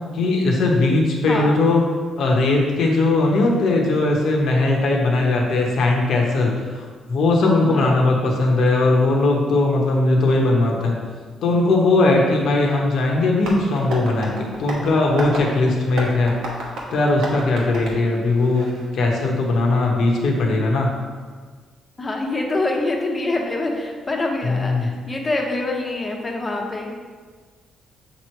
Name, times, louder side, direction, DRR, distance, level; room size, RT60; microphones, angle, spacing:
voice 1, 0.1-1.8 2.2-11.0 11.4-20.9 24.4-24.9, left 2 dB, 70° left, -1 dB, 1.0 m, -19 dB
voice 2, 1.3-1.6 7.7-8.0 22.0-26.9, left 2 dB, 25° left, 0 dB, 1.0 m, -25 dB
Tap, 13.4-18.9, right 1 dB, 80° right, 1.2 m, -32 dB
7.0 x 3.1 x 4.5 m, 1.5 s
cardioid pair, 90°, 0 cm